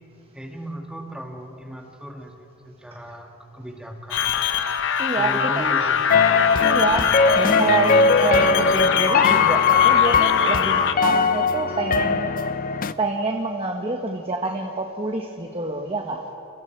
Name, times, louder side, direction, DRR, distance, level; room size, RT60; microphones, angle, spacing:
voice 1, 0.3-4.4 5.1-6.1, equal, 5° right, 2 dB, 2.1 m, -36 dB
sound 1, 4.1-10.9, left 7 dB, 60° left, 1.0 m, -23 dB
voice 2, 5.0-5.4 6.6-12.3 13.0-16.2, right 3 dB, 25° right, 2 dB, 1.4 m, -27 dB
sound 2, 6.1-12.9, left 5 dB, 40° left, 0.6 m, -20 dB
30.0 x 29.5 x 4.6 m, 2.8 s
head